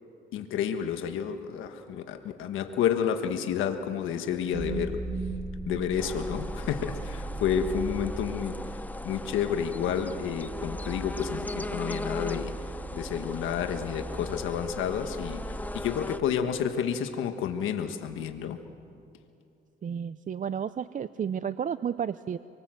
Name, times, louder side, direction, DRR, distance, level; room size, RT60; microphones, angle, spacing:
voice 1, 0.3-5.0 5.7-8.8 9.0-12.5 12.9-18.6, left 8 dB, 90° left, 6 dB, 1.4 m, -30 dB
sound 1, 4.5-16.6, right 2 dB, 75° right, 5.6 m, -38 dB
sound 2, 6.0-16.2, left 2 dB, 10° left, 0.8 m, -39 dB
voice 2, 19.8-22.4, right 8 dB, 40° right, 14 dB, 0.5 m, -32 dB
27.0 x 23.5 x 7.7 m, 2.5 s
cardioid pair, 90°, 20 cm